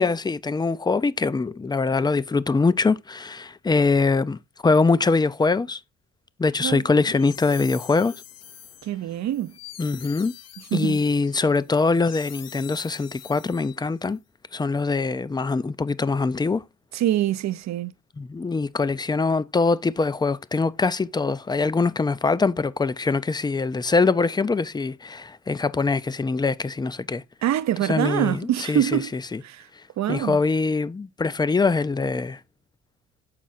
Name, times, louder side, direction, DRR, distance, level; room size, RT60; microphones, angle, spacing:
voice 1, 0.0-5.8 6.4-8.2 9.8-10.3 10.7-14.2 14.5-16.6 18.2-27.2 27.8-29.4 30.1-32.4, left 4 dB, 15° left, 0.4 m, -23 dB
voice 2, 6.6-7.0 8.8-9.5 10.7-11.0 16.9-17.9 27.4-29.1 29.4-29.7 30.0-30.4, right 12 dB, 65° right, 0.7 m, -25 dB
sound 1, 6.8-14.1, left 10 dB, 60° left, 0.8 m, -45 dB
7.6 x 4.6 x 4.2 m
cardioid pair, 90°, 30 cm